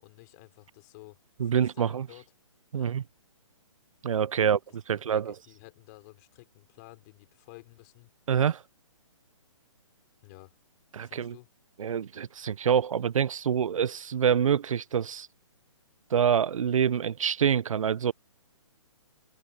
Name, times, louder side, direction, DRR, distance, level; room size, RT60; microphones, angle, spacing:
voice 1, 0.0-2.3 2.7-3.0 4.4-4.6 4.9-8.1 10.2-10.5 11.0-11.5, left 24 dB, 30° left, 4.5 m, -52 dB
voice 2, 1.4-2.1 2.7-3.0 4.0-4.6 4.9-5.3 8.3-8.6 10.9-11.3 11.8-15.3 16.1-18.1, right 8 dB, 75° right, 0.6 m, -26 dB
hypercardioid pair, 155°, 17 cm